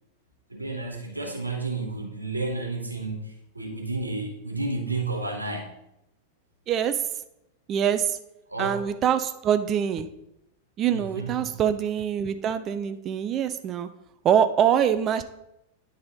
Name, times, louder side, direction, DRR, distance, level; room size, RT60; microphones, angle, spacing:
voice 1, 0.5-5.7 8.5-8.9 10.9-11.6, right 3 dB, 85° right, 1 dB, 1.1 m, -31 dB
voice 2, 6.7-7.0 7.7-8.2 8.6-10.1 10.8-13.9 14.2-15.2, right 9 dB, 30° right, 10 dB, 0.4 m, -24 dB
9.5 x 4.0 x 3.9 m, 0.83 s
figure-of-eight pair, 90°, 0 cm